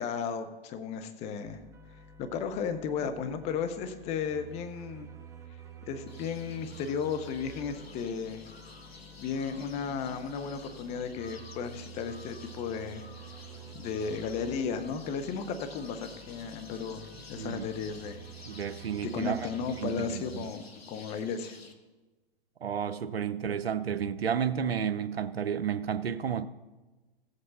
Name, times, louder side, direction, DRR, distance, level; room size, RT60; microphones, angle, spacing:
voice 1, 0.0-1.6 2.2-5.1 5.9-8.4 9.2-13.1 13.7-18.2 19.1-20.6 20.9-21.6, left 6 dB, 20° left, 9 dB, 0.8 m, -34 dB
sound 1, 1.4-20.5, right 6 dB, 10° right, 0.5 m, -50 dB
sound 2, 6.1-21.7, left 3 dB, 90° left, 1.3 m, -51 dB
voice 2, 18.5-19.5 19.8-20.5 22.6-26.5, right 8 dB, 85° right, 13 dB, 0.7 m, -32 dB
15.5 x 8.0 x 4.1 m, 1.2 s
hypercardioid pair, 130°, 30 cm